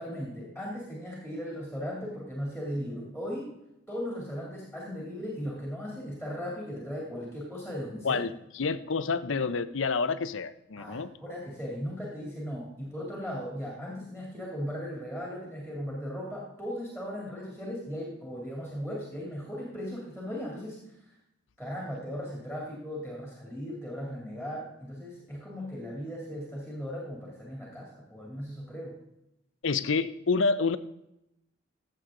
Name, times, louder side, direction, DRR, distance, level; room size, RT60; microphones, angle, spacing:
voice 1, 0.0-3.5 3.9-8.2 10.8-21.1 21.6-29.0, equal, ahead, -3 dB, 2.8 m, -37 dB
voice 2, 8.0-11.1 29.6-30.8, left 4 dB, 80° left, 13 dB, 0.7 m, -28 dB
14.5 x 7.9 x 3.8 m, 0.84 s
head